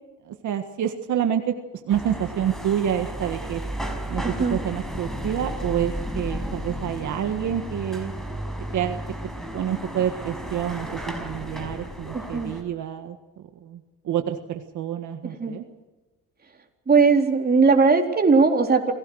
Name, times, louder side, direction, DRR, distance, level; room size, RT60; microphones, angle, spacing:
voice 1, 0.3-1.5 1.9-3.6 4.1-4.2 4.5-8.1 8.7-9.0 9.5-13.2 13.6-13.8 14.0-15.6, right 10 dB, 75° right, 6 dB, 1.7 m, -27 dB
sound 1, 1.9-12.6, equal, ahead, 5.5 m, -33 dB
voice 2, 4.2-4.6 12.1-12.5 15.2-15.5 16.9-18.9, right 4 dB, 30° right, 2 dB, 4.0 m, -19 dB
27.5 x 17.5 x 6.4 m, 1.2 s
cardioid pair, 90°, 30 cm